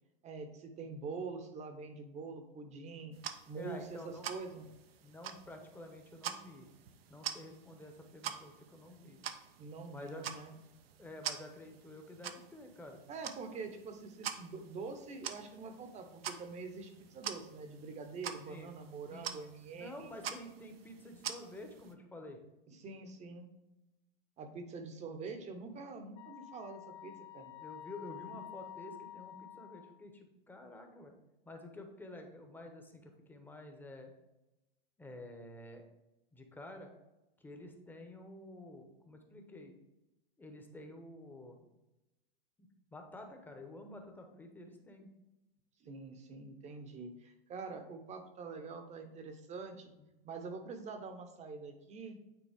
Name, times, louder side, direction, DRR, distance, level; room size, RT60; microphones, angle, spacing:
voice 1, 0.2-3.2 3.5-4.7 9.6-10.5 13.1-20.1 22.7-23.5 24.4-27.5 45.8-49.9 50.2-52.2, right 4 dB, 25° right, 7 dB, 0.9 m, -45 dB
sound 1, 3.1-21.9, right 9 dB, 80° right, 0.8 m, -46 dB
voice 2, 3.6-4.3 5.0-6.7 7.1-9.2 9.9-10.2 11.0-13.0 18.5-18.7 19.1-19.3 19.7-22.4 22.8-22.9 27.6-31.1 31.4-34.1 35.0-35.8 36.3-36.9 37.4-39.8 40.4-41.6 42.9-45.1 50.0-50.1, left 1 dB, 5° left, 3 dB, 1.0 m, -50 dB
Wind instrument woodwind instrument, 26.2-30.0, left 13 dB, 35° left, 1.0 m, -50 dB
9.1 x 3.9 x 3.6 m, 0.98 s
hypercardioid pair, 125°, 30 cm